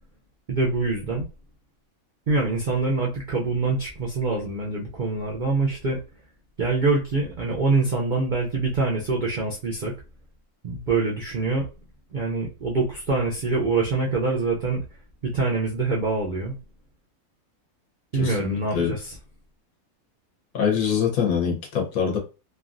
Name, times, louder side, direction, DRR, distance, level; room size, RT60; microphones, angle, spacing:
voice 1, 0.5-1.3 2.3-6.0 6.6-9.9 10.6-11.7 12.1-14.8 15.2-16.5 18.1-19.1, right 3 dB, 65° right, 0.4 m, -25 dB
voice 2, 18.1-19.0 20.5-22.2, left 7 dB, 75° left, 1.3 m, -24 dB
3.1 x 2.3 x 2.5 m
omnidirectional pair, 1.5 m